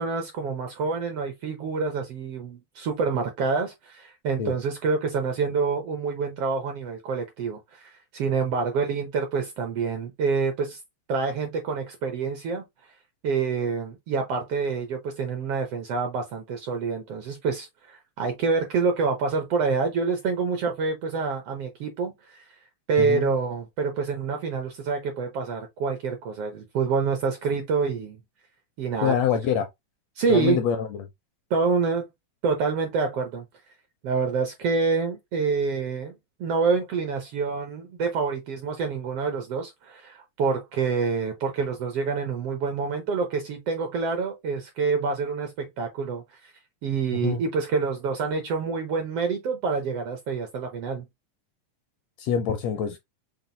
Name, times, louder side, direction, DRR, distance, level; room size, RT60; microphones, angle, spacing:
voice 1, 0.0-10.8 11.1-12.6 13.2-22.4 22.9-28.2 28.8-29.2 30.2-30.6 31.5-32.1 32.4-33.4 34.0-36.1 36.4-46.2 46.8-51.0, right 5 dB, 70° right, 1.5 m, -27 dB
voice 2, 29.0-29.7 30.3-31.1 47.1-47.4 52.2-53.0, left 8 dB, 75° left, 1.6 m, -25 dB
5.8 x 2.2 x 3.8 m
omnidirectional pair, 3.5 m